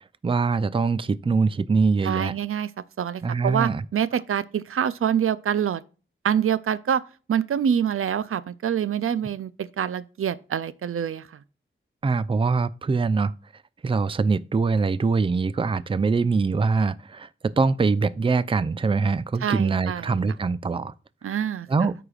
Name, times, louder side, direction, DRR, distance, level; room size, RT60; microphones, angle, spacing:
voice 1, 0.2-2.3 3.2-3.8 12.0-13.3 13.8-20.9 21.7-21.9, right 4 dB, 25° right, 0.4 m, -23 dB
voice 2, 2.0-2.7 3.0-5.8 6.2-7.0 7.3-11.3 19.4-20.1 21.2-21.7, right 8 dB, 85° right, 0.5 m, -26 dB
13.5 x 4.9 x 2.4 m
wide cardioid pair, 75°, 21 cm